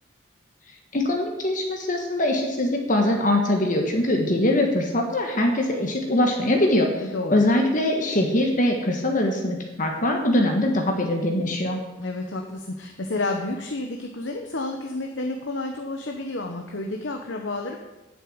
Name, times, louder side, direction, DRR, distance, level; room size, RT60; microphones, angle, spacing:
voice 1, 0.9-6.9 7.3-11.8, left 1 dB, 40° left, 2 dB, 1.4 m, -22 dB
voice 2, 7.0-7.4 12.0-17.8, left 2 dB, 65° left, 2 dB, 1.0 m, -30 dB
9.2 x 7.4 x 7.8 m, 1.0 s
head